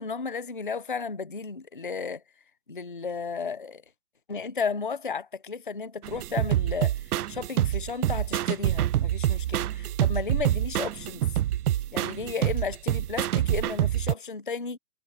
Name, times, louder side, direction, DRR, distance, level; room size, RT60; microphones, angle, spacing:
voice 1, 0.0-2.2 2.7-3.8 4.3-11.2 11.9-14.8, left 5 dB, 35° left, 0.4 m, -33 dB
sound 1, 6.0-14.1, right 13 dB, 75° right, 0.5 m, -26 dB
hypercardioid pair, 170°, 46 cm